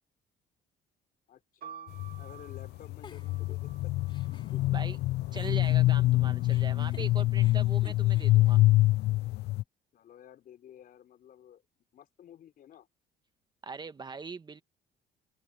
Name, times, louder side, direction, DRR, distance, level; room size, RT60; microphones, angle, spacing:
voice 1, 1.3-3.9 9.9-11.6 11.9-12.9, left 10 dB, 60° left, 4.3 m, -53 dB
sound 1, 1.6-5.4 6.3-7.0, right 9 dB, 60° right, 2.8 m, -52 dB
sound 2, 1.9-9.6, left 17 dB, 80° left, 0.5 m, -26 dB
Giggle, 3.0-5.0 5.3-9.5, left 5 dB, 30° left, 3.2 m, -55 dB
voice 2, 5.3-8.6 13.6-14.6, right 4 dB, 25° right, 1.3 m, -41 dB
open air
cardioid pair, 110°, 17 cm